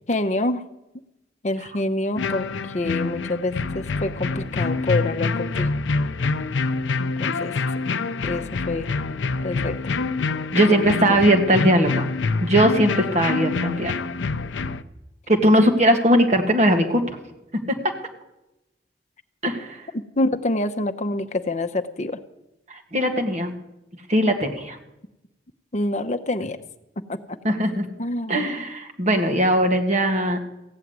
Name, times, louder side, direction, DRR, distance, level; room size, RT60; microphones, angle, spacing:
voice 1, 0.1-0.6 1.4-5.7 7.0-7.5 8.2-8.9 9.4-9.9 10.6-11.2 19.9-22.2 25.7-26.6 27.1-27.5 28.0-28.5 29.1-29.2, left 2 dB, 40° left, 9 dB, 0.8 m, -27 dB
sound 1, 2.2-14.8, left 4 dB, 85° left, 0.6 m, -26 dB
voice 2, 10.5-12.1 12.4-13.9 15.3-17.0 17.7-17.9 19.4-19.8 22.7-23.5 24.1-24.8 27.4-27.9 28.3-30.4, equal, 40° right, 4 dB, 1.7 m, -19 dB
15.5 x 7.3 x 9.4 m, 0.92 s
head